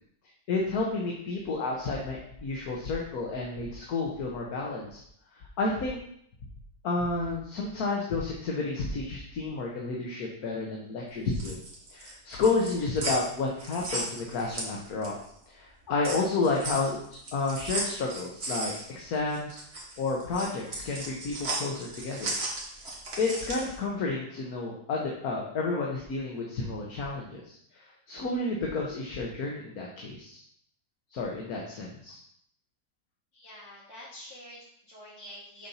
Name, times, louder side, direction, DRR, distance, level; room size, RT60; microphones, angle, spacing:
voice 1, 0.5-5.0 5.6-6.0 6.8-11.6 11.9-15.2 15.5-22.3 23.2-27.5 28.1-30.4 31.1-32.2, left 3 dB, 65° left, -2 dB, 1.5 m, -31 dB
sound 1, 11.2-15.3 15.7-23.8, right 2 dB, 40° right, 1.8 m, -36 dB
voice 2, 33.3-35.7, left 1 dB, 45° left, -11 dB, 2.7 m, -47 dB
7.0 x 4.2 x 5.6 m, 0.68 s
omnidirectional pair, 1.7 m